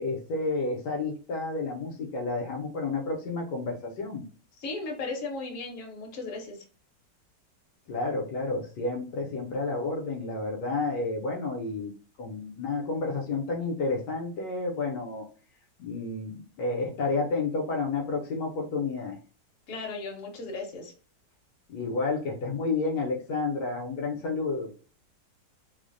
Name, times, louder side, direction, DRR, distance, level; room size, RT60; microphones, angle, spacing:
voice 1, 0.0-4.2 7.9-11.9 12.2-15.2 15.8-19.2 21.7-24.7, left 3 dB, 75° left, 1 dB, 1.2 m, -30 dB
voice 2, 4.6-6.6 19.7-20.9, left 3 dB, 55° left, 1 dB, 0.9 m, -36 dB
3.0 x 2.0 x 2.4 m, 0.40 s
omnidirectional pair, 1.9 m